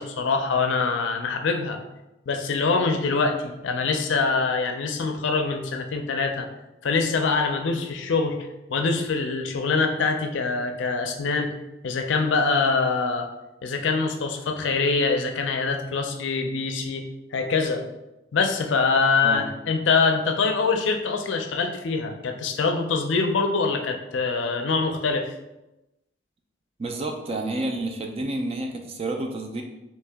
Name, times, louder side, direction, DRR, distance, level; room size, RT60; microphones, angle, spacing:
voice 1, 0.0-1.8 2.3-6.5 6.8-8.4 8.7-11.5 11.8-13.3 13.6-17.1 17.3-17.8 18.3-25.3, left 4 dB, 75° left, 5 dB, 0.4 m, -24 dB
voice 2, 26.8-29.6, right 2 dB, 30° right, 3 dB, 0.3 m, -29 dB
3.0 x 2.8 x 3.4 m, 0.95 s
head